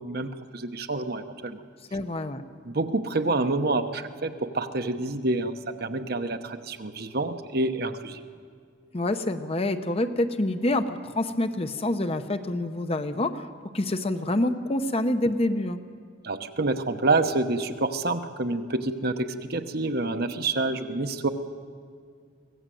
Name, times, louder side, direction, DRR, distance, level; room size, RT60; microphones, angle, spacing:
voice 1, 0.0-1.6 2.6-5.5 5.8-8.2 16.2-21.3, right 2 dB, 55° right, 8 dB, 1.1 m, -27 dB
voice 2, 1.9-2.4 8.9-13.5 13.7-15.8, left 1 dB, 30° left, 9 dB, 0.8 m, -27 dB
24.0 x 18.0 x 7.8 m, 2.2 s
head